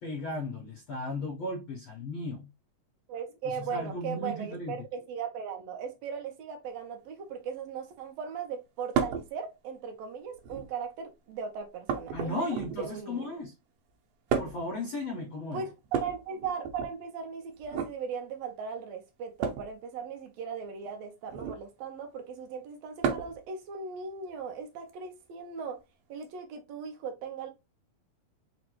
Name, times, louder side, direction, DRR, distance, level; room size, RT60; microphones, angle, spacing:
voice 1, 0.0-2.5 3.4-4.8 12.1-13.5 14.4-15.7, left 1 dB, 90° left, 1.1 m, -35 dB
voice 2, 3.1-13.3 15.5-25.8 26.1-27.5, right 6 dB, 70° right, 1.6 m, -38 dB
sound 1, 8.9-9.3 10.3-10.8 11.9-13.0 14.3-14.7 15.8-16.9 17.6-17.9 19.4-19.7 21.3-21.7 23.0-23.4 24.9-25.0 26.2-26.3, right 7 dB, 90° right, 2.2 m, -32 dB
5.0 x 2.2 x 3.0 m
omnidirectional pair, 3.7 m